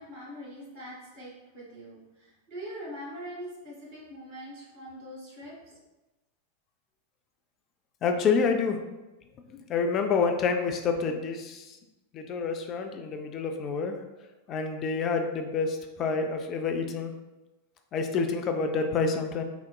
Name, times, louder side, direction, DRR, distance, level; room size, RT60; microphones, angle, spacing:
voice 1, 0.0-5.8, equal, 50° right, -6 dB, 1.4 m, -43 dB
voice 2, 8.0-8.8 9.5-11.8 12.1-14.0 14.5-17.1 17.9-19.4, left 5 dB, 30° left, 5 dB, 0.3 m, -28 dB
3.9 x 2.1 x 2.2 m, 1.1 s
figure-of-eight pair, 90°, 0 cm